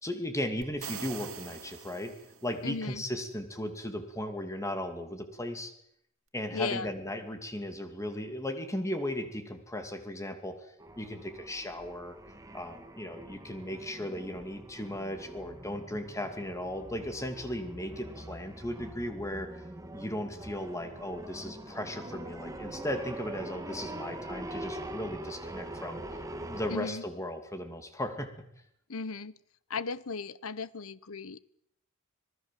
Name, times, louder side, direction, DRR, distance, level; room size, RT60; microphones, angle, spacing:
voice 1, 0.0-2.1 2.4-5.7 6.3-10.6 11.0-12.1 12.5-19.5 19.9-26.0 26.5-28.3, left 1 dB, 15° left, 7 dB, 2.5 m, -36 dB
sound 1, 0.6-2.7, right 7 dB, 85° right, 2.5 m, -43 dB
voice 2, 2.6-3.0 6.5-6.9 26.7-27.0 28.9-29.4 29.7-31.4, left 4 dB, 80° left, 18 dB, 1.0 m, -36 dB
sound 2, 10.8-26.8, right 1 dB, 15° right, 2.2 m, -43 dB
27.0 x 19.0 x 7.6 m, 0.72 s
head